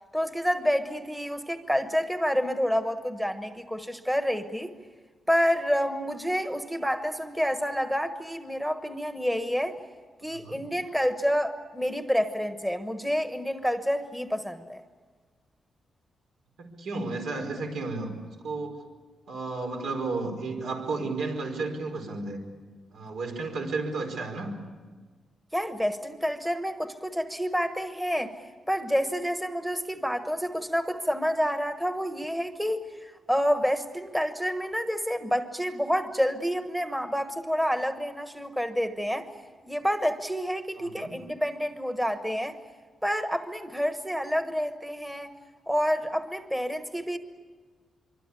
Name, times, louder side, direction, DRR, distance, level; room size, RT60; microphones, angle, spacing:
voice 1, 0.1-4.7 5.3-9.8 10.2-14.8 25.5-28.4 28.7-39.3 39.6-42.5 43.0-45.3 45.7-47.2, equal, 5° right, 8 dB, 1.1 m, -28 dB
voice 2, 10.2-10.6 16.6-18.1 18.4-18.9 19.3-22.4 22.9-24.5 40.7-41.1, right 3 dB, 85° right, 3 dB, 4.8 m, -33 dB
25.0 x 24.5 x 8.5 m, 1.5 s
wide cardioid pair, 150°, 0 cm